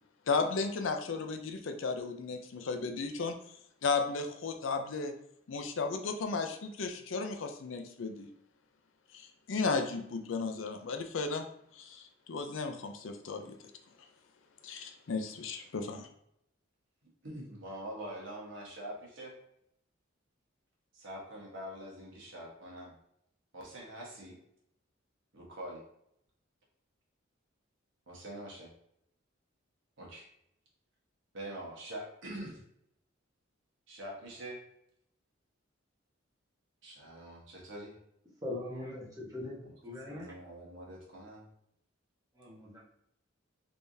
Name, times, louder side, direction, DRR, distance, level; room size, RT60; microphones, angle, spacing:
voice 1, 0.3-3.3 3.8-5.1 5.5-8.3 9.1-11.4 11.7-13.5 14.6-16.1, left 4 dB, 70° left, 6 dB, 0.5 m, -34 dB
voice 2, 17.2-19.3 20.9-22.9 23.5-24.4 25.3-25.8 28.1-28.7 30.0-30.3 31.3-32.6 33.9-34.6 36.8-37.9 39.6-39.7 40.0-41.4, right 1 dB, 65° right, -3 dB, 1.2 m, -44 dB
voice 3, 38.4-40.3 42.3-42.8, left 2 dB, 20° right, -7 dB, 1.2 m, -41 dB
3.5 x 3.4 x 2.7 m, 0.73 s
head